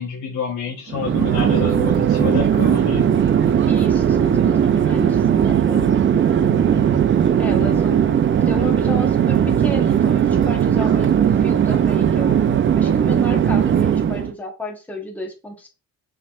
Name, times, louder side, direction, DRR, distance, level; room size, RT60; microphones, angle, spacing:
voice 1, 0.0-3.0 6.4-7.1, left 6 dB, 80° left, -2 dB, 1.1 m, -28 dB
Chatter / Fixed-wing aircraft airplane, 0.9-14.3, right 9 dB, 40° right, 0.5 m, -18 dB
sound 1, 1.3-8.7, right 6 dB, 90° right, 0.6 m, -28 dB
voice 2, 3.7-6.0 7.4-8.0 8.4-12.4 12.7-15.7, left 1 dB, 5° left, 1 dB, 1.1 m, -33 dB
5.7 x 3.5 x 2.4 m, 0.31 s
cardioid pair, 90°, 30 cm